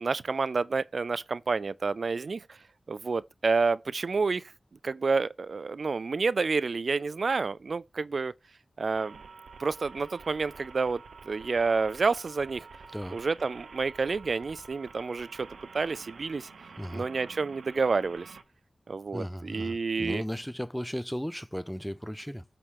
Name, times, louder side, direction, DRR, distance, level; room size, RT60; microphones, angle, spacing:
voice 1, 0.0-2.6 2.9-4.5 4.8-8.3 8.8-9.2 9.6-12.7 13.1-15.5 15.7-16.5 16.9-18.3 18.9-20.2, right 4 dB, 70° right, 0.3 m, -29 dB
sound 1, 8.9-18.4, right 5 dB, 85° right, 0.9 m, -49 dB
voice 2, 19.1-22.4, equal, 5° left, 0.6 m, -35 dB
7.9 x 4.3 x 3.7 m
cardioid pair, 50°, 0 cm